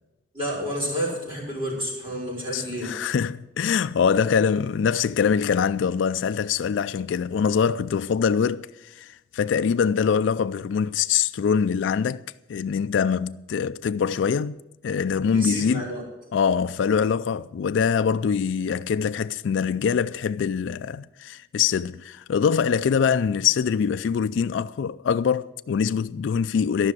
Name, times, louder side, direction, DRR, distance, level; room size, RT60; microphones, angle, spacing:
voice 1, 0.3-2.9 15.3-16.0, equal, 30° right, 4.7 m, -29 dB
voice 2, 2.5-12.2 12.5-15.8 16.3-26.9, left 6 dB, 85° left, 0.3 m, -24 dB
13.0 x 6.1 x 9.4 m
head